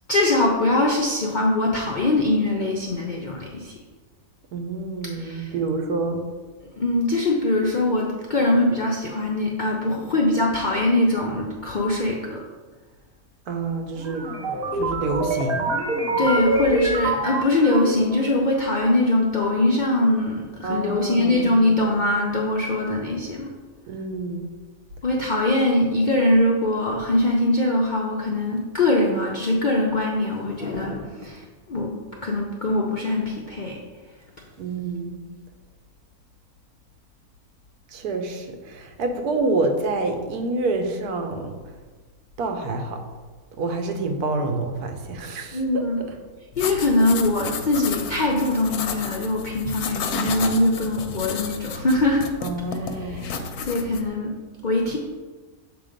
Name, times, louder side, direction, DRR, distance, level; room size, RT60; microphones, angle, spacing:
voice 1, 0.1-3.8 5.2-5.5 6.7-12.4 16.2-23.5 25.0-33.8 45.5-46.0 46.6-52.2 53.0-54.3 54.6-55.0, left 2 dB, 60° left, -2 dB, 0.4 m, -22 dB
voice 2, 4.5-6.3 13.5-14.3 14.7-15.7 20.6-21.5 23.9-24.4 34.6-35.3 37.9-41.6 42.4-43.0 43.6-45.8 52.4-53.6, right 3 dB, 80° right, 5 dB, 1.2 m, -27 dB
sound 1, 14.0-18.2, right 2 dB, 45° right, 0.9 m, -25 dB
sound 2, 46.5-54.1, left 5 dB, 80° left, 1.1 m, -32 dB
6.8 x 2.9 x 5.0 m, 1.4 s
omnidirectional pair, 1.6 m